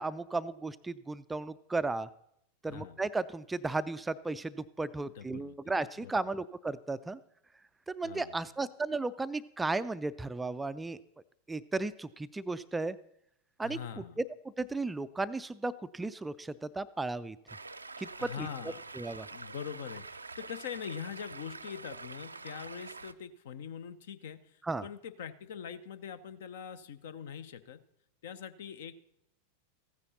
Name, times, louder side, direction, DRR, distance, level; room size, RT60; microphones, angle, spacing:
voice 1, 0.0-2.1 2.6-7.2 7.9-11.0 11.5-13.0 13.6-13.8 14.2-14.3 14.6-17.4 18.0-18.5 19.0-19.3 24.7-24.9, right 3 dB, 10° right, 14 dB, 0.3 m, -34 dB
voice 2, 5.1-5.6 6.0-6.2 8.0-8.4 13.6-14.2 18.2-18.8 19.3-27.8 28.2-28.9, left 8 dB, 55° left, 13 dB, 0.6 m, -43 dB
Stream, 17.5-23.1, right 3 dB, 80° right, 0.4 m, -46 dB
15.0 x 9.8 x 4.1 m, 0.76 s
figure-of-eight pair, 90°, 0 cm